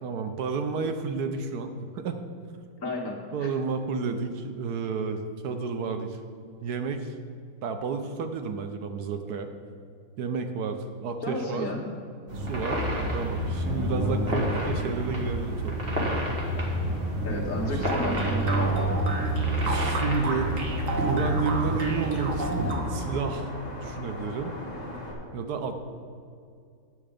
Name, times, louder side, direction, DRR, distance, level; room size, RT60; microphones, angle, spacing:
voice 1, 0.0-2.2 3.3-6.2 6.6-7.1 7.6-9.5 10.2-11.7 12.3-12.8 13.1-15.8 17.7-17.8 19.6-20.5 20.9-23.5 23.8-24.6 25.3-25.7, right 4 dB, 70° right, 6 dB, 1.2 m, -31 dB
voice 2, 2.8-3.5 11.2-11.8 17.2-18.9, left 2 dB, 50° left, -1 dB, 1.8 m, -33 dB
sound 1, 12.3-22.8, right 1 dB, 35° right, 1.7 m, -28 dB
sound 2, 17.6-25.1, left 1 dB, 25° left, 1.5 m, -39 dB
sound 3, 17.9-23.2, right 2 dB, 55° right, 1.5 m, -33 dB
10.0 x 7.6 x 5.2 m, 2.3 s
omnidirectional pair, 1.8 m